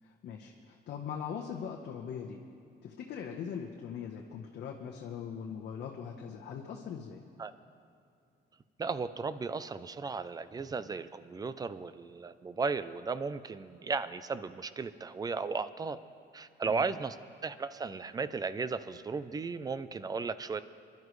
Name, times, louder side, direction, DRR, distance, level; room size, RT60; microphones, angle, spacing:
voice 1, 0.0-2.4 2.8-7.2 16.7-16.8, left 7 dB, 75° left, -1 dB, 1.1 m, -41 dB
voice 2, 8.8-16.0 16.3-17.2 17.4-20.6, right 4 dB, 20° right, 13 dB, 0.5 m, -35 dB
25.5 x 12.0 x 3.2 m, 2.6 s
cardioid pair, 140°, 17 cm